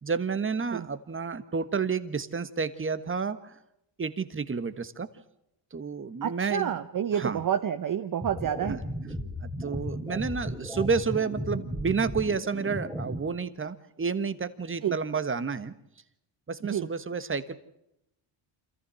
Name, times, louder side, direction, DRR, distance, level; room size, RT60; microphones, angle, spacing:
voice 1, 0.0-3.5 4.0-5.1 5.7-6.7 7.2-7.4 8.7-8.8 9.4-15.7 16.5-17.5, right 5 dB, 25° right, 13 dB, 1.4 m, -30 dB
voice 2, 6.2-8.8 14.8-15.0 16.6-16.9, right 9 dB, 40° right, 9 dB, 0.9 m, -29 dB
sound 1, 8.2-13.2, equal, ahead, 3.6 m, -35 dB
27.0 x 14.5 x 7.6 m, 0.81 s
cardioid pair, 95°, 49 cm